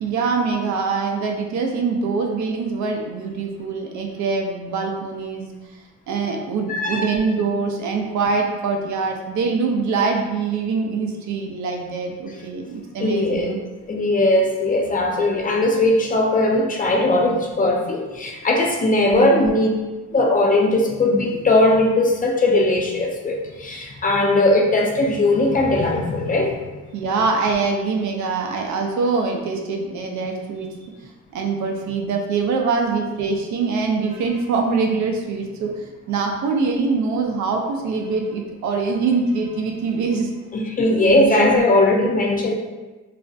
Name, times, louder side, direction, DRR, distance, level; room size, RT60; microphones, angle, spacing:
voice 1, 0.0-5.5 6.1-13.6 19.0-19.5 26.9-30.9 31.3-40.3 40.9-41.6, right 4 dB, 70° right, 2 dB, 0.5 m, -24 dB
voice 2, 6.7-7.1 13.0-13.6 13.9-19.7 20.1-26.6 40.5-42.6, left 2 dB, 30° left, 0 dB, 0.4 m, -19 dB
2.4 x 2.1 x 2.5 m, 1.2 s
cardioid pair, 90°, 30 cm